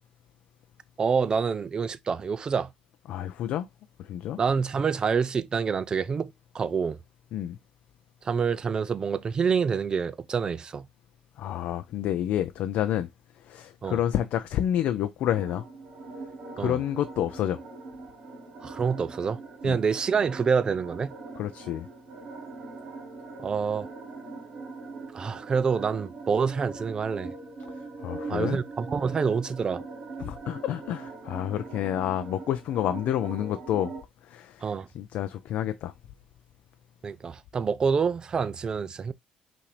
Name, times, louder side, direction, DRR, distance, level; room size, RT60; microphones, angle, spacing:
voice 1, 1.0-2.7 4.4-7.0 8.2-10.9 13.8-14.0 16.6-16.8 18.6-21.1 23.4-23.9 25.1-27.3 28.3-29.8 34.6-34.9 37.0-39.1, right 6 dB, 35° right, 0.4 m, -27 dB
voice 2, 3.1-3.7 4.0-4.4 7.3-7.6 11.4-13.1 13.4-15.6 16.6-17.6 19.6-19.8 21.4-21.9 28.0-28.6 30.2-33.9 34.2-35.9, left 11 dB, 75° left, 0.4 m, -29 dB
sound 1, 15.3-34.0, right 3 dB, 60° right, 1.5 m, -41 dB
5.7 x 2.6 x 3.2 m
cardioid pair, 120°, 2 cm